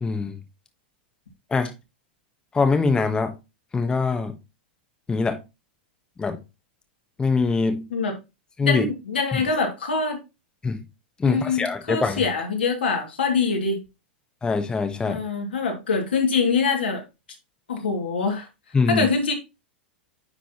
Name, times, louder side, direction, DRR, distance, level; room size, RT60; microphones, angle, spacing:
voice 1, 0.0-0.4 1.5-1.7 2.5-3.3 3.7-4.3 5.1-5.4 6.2-6.4 7.2-7.9 8.6-8.9 9.3-9.4 10.6-10.8 11.2-12.2 14.4-15.2 18.7-19.1, left 4 dB, 15° left, 1.1 m, -23 dB
voice 2, 8.6-10.2 11.2-13.8 15.0-17.0 17.7-18.5 18.9-19.3, left 4 dB, 80° left, 2.4 m, -24 dB
9.6 x 3.9 x 3.0 m
hypercardioid pair, 105°, 5 cm